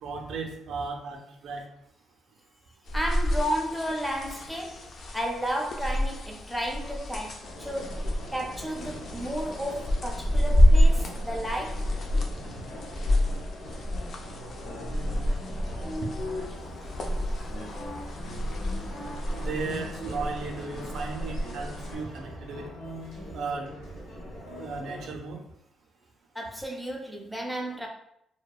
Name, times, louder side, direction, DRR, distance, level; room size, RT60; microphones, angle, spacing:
voice 1, 0.0-1.7 14.8-15.3 18.9-19.0 19.4-22.7 23.3-23.7 24.6-25.4, right 4 dB, 70° right, 2 dB, 0.5 m, -35 dB
sound 1, 2.9-22.0, equal, 55° left, 0.4 m, -28 dB
voice 2, 2.9-8.0 8.3-11.9 26.3-27.9, equal, ahead, 1 dB, 0.5 m, -33 dB
sound 2, 7.4-25.1, left 1 dB, 85° left, 0.8 m, -41 dB
sound 3, 18.4-21.8, left 1 dB, 30° left, 0.8 m, -45 dB
2.6 x 2.1 x 2.3 m, 0.76 s
cardioid pair, 90°, 0 cm